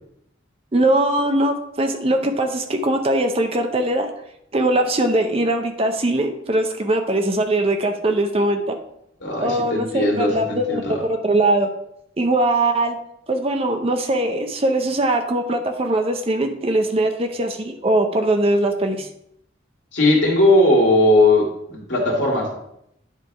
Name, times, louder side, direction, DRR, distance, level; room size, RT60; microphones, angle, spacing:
voice 1, 0.7-4.1 4.5-8.8 9.4-11.7 12.2-13.0 13.3-19.1, right 1 dB, 30° right, 5 dB, 0.6 m, -21 dB
voice 2, 9.2-11.0 19.9-22.5, left 1 dB, 65° left, -2 dB, 2.1 m, -18 dB
9.9 x 3.4 x 4.6 m, 0.76 s
head